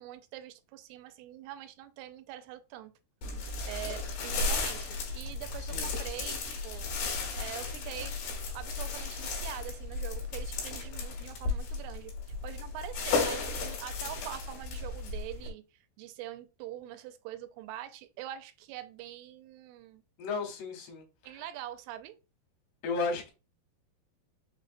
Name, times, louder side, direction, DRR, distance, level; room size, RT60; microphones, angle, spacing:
voice 1, 0.0-2.9 3.4-6.9 7.3-8.2 8.5-12.1 12.4-15.6 16.0-20.0 21.2-22.2, right 13 dB, 85° right, 2.5 m, -44 dB
sound 1, 3.2-15.5, left 3 dB, 75° left, 3.0 m, -34 dB
voice 2, 5.6-5.9 20.2-21.1 22.8-23.3, left 4 dB, 90° left, 3.1 m, -34 dB
6.3 x 2.2 x 2.5 m
omnidirectional pair, 4.5 m